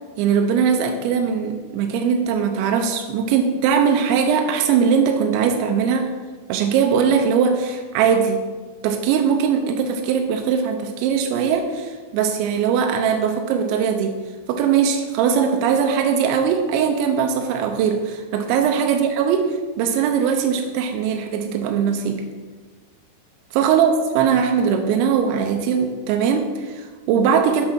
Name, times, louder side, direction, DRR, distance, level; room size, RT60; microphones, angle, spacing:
voice 1, 0.2-6.1 6.5-8.4 8.8-14.2 14.5-22.2 23.5-27.7, right 7 dB, 85° right, 4 dB, 3.0 m, -20 dB
7.8 x 5.8 x 6.2 m, 1.4 s
omnidirectional pair, 5.3 m